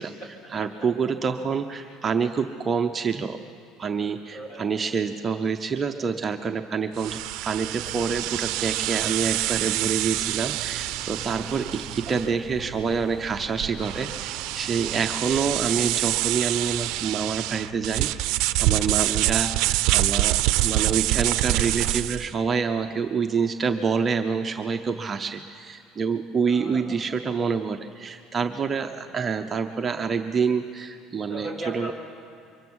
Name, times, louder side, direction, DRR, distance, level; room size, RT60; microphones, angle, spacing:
voice 1, 0.0-0.7 1.8-2.0 2.9-3.0 4.3-4.7 11.4-11.8 15.2-15.3 18.9-19.3 26.4-27.0 28.6-29.2 31.3-31.9, right 1 dB, 35° left, 1 dB, 4.6 m, -41 dB
voice 2, 0.5-3.4 3.8-7.1 7.4-8.2 8.6-11.6 12.1-18.1 18.6-20.4 20.6-25.4 25.7-31.9, right 5 dB, 20° right, 5 dB, 0.7 m, -27 dB
sound 1, 7.0-22.3, right 17 dB, 65° right, 0.5 m, -26 dB
sound 2, 7.9-17.0, right 1 dB, 20° left, 2.0 m, -45 dB
24.0 x 23.5 x 6.3 m, 2.3 s
cardioid pair, 155°, 0 cm